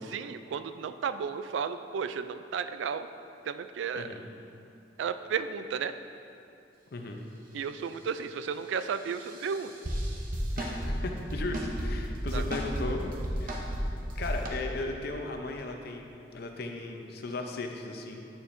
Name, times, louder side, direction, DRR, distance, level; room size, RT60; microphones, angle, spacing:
voice 1, 0.1-3.1 3.5-4.1 5.0-6.0 7.5-9.7 12.3-12.4, right 6 dB, 75° right, 10 dB, 0.3 m, -33 dB
voice 2, 3.9-4.3 6.9-7.2 10.6-13.6 14.0-18.2, left 2 dB, 55° left, 3 dB, 0.6 m, -37 dB
sound 1, 9.1-10.9 11.3-11.9 12.3-12.9 13.1-13.8 14.1-14.5, equal, 50° right, 0.8 m, -33 dB
8.8 x 7.0 x 2.6 m, 2.7 s
head